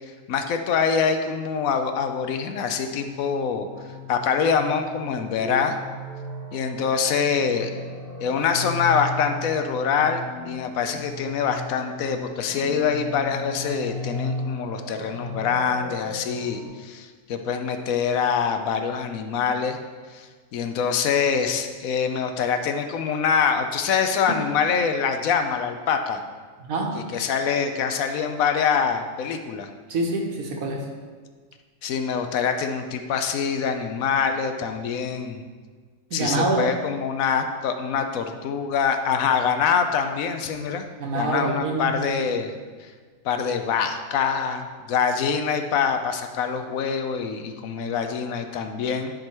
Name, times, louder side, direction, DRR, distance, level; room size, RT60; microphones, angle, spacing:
voice 1, 0.3-3.7 4.1-5.8 6.5-7.7 8.2-19.8 20.1-26.2 27.1-29.7 31.8-35.4 36.1-40.8 41.1-42.5 43.2-49.1, left 6 dB, 80° left, 7 dB, 1.1 m, -25 dB
sound 1, 1.9-16.7, left 1 dB, 30° left, 2.1 m, -36 dB
voice 2, 26.6-27.0 29.9-30.9 36.1-36.7 41.0-42.3, right 2 dB, 80° right, 0 dB, 1.5 m, -26 dB
10.5 x 3.9 x 4.4 m, 1.5 s
omnidirectional pair, 1.4 m